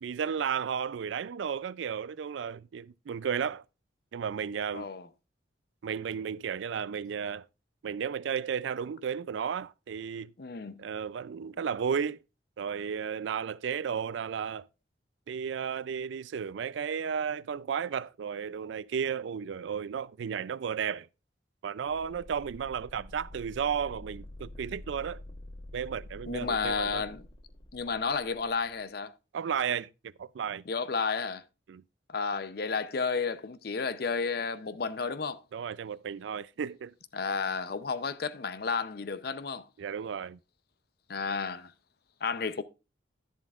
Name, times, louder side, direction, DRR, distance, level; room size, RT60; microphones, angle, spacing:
voice 1, 0.0-3.6 4.1-4.9 5.8-7.4 7.8-10.3 10.8-12.2 12.6-14.7 15.3-21.1 21.6-25.2 25.7-27.0 29.3-29.9 30.2-30.6 31.7-31.8 35.5-36.9 39.8-40.4, right 7 dB, 80° right, 0.4 m, -33 dB
voice 2, 4.7-5.1 10.4-10.9 26.3-27.2 27.7-29.1 30.7-31.4 32.1-35.4 37.1-39.6 41.1-41.7 42.2-42.6, left 5 dB, 55° left, 0.6 m, -32 dB
sound 1, 21.9-28.5, left 1 dB, 25° left, 0.9 m, -47 dB
11.0 x 10.5 x 2.4 m
head